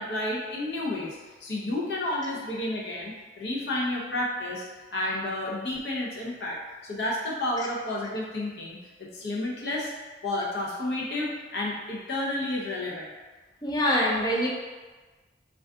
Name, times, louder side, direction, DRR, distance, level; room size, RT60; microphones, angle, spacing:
voice 1, 0.0-4.6 4.9-6.6 6.8-9.9 10.2-13.1, left 1 dB, 65° left, -3 dB, 0.6 m, -31 dB
voice 2, 13.6-14.5, equal, 20° left, -3 dB, 0.4 m, -24 dB
2.5 x 2.3 x 3.5 m, 1.3 s
head